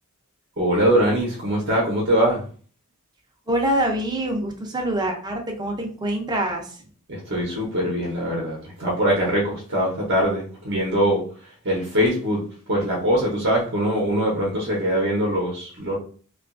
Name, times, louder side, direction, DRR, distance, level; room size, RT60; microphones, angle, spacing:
voice 1, 0.6-2.4 7.1-11.2 11.6-15.9, equal, 55° right, -2 dB, 0.7 m, -22 dB
voice 2, 3.5-6.8, right 1 dB, 20° right, 2 dB, 0.5 m, -25 dB
2.7 x 2.3 x 2.5 m, 0.42 s
head